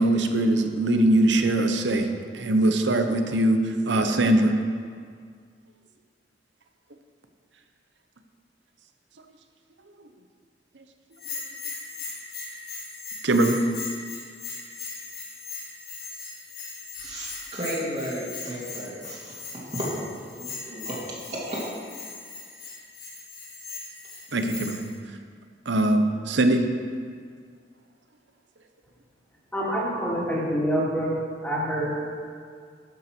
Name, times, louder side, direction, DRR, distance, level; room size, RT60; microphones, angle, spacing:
voice 1, 0.0-4.5 13.2-13.6 24.3-24.8 25.7-26.7, right 1 dB, 75° right, 6 dB, 0.9 m, -22 dB
Bell, 11.2-24.9, left 4 dB, 60° left, 3.0 m, -39 dB
voice 2, 17.0-19.9 20.3-20.9 21.3-21.7, right 1 dB, 40° right, -7 dB, 2.5 m, -34 dB
voice 3, 29.5-31.1 31.4-31.9, equal, 10° left, -6 dB, 2.6 m, -26 dB
12.0 x 5.8 x 6.1 m, 2.1 s
head